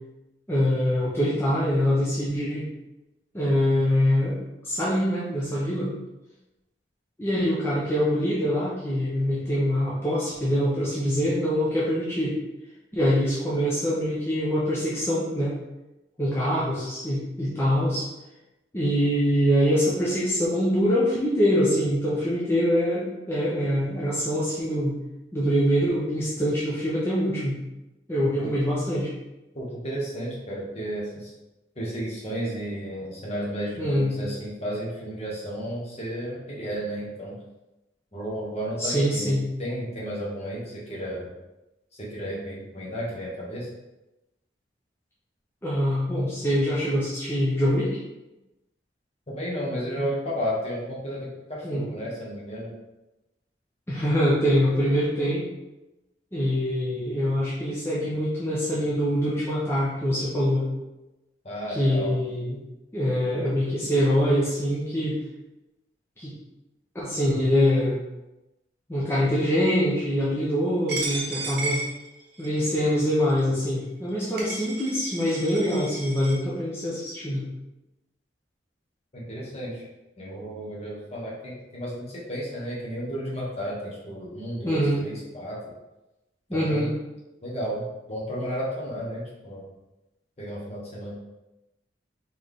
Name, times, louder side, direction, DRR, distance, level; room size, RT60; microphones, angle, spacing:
voice 1, 0.5-2.7 3.3-4.4 4.6-5.9 7.2-12.4 12.9-15.6 16.2-18.1 18.7-25.0 25.3-27.6 28.1-29.1 33.8-34.2 38.8-39.5 45.6-48.0 51.6-51.9 53.9-55.5 56.3-60.7 61.7-62.6 62.9-65.2 66.2-66.3 66.9-68.0 68.9-71.8 72.4-77.5 84.6-85.0 86.5-86.9, equal, 15° left, -8 dB, 0.8 m, -24 dB
voice 2, 29.5-31.3 31.7-37.3 38.1-39.3 39.6-41.3 41.9-43.7 49.3-52.7 61.4-62.1 79.1-79.9 80.2-85.7 86.5-86.9 87.4-89.7 90.4-91.1, equal, 35° left, -5 dB, 1.3 m, -33 dB
Coin (dropping), 70.9-72.6 73.3-73.4 74.1-74.2 74.4-76.3, right 3 dB, 65° right, 1.1 m, -33 dB
4.5 x 3.2 x 3.7 m, 0.98 s
head